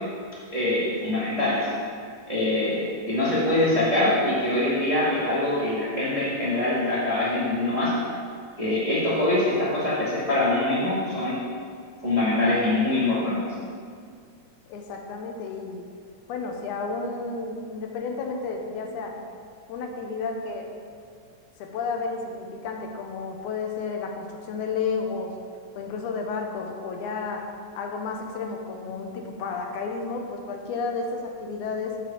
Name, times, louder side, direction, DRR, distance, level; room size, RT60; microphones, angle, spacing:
voice 1, 0.5-1.7 2.3-8.0 8.6-11.4 12.0-13.5, left 2 dB, 15° right, -9 dB, 1.5 m, -24 dB
voice 2, 14.7-15.9 16.3-19.2 19.7-20.7 21.6-25.3 25.8-27.5 27.8-32.0, left 4 dB, 80° left, 2 dB, 2.2 m, -32 dB
7.9 x 5.2 x 7.1 m, 2.1 s
omnidirectional pair, 3.6 m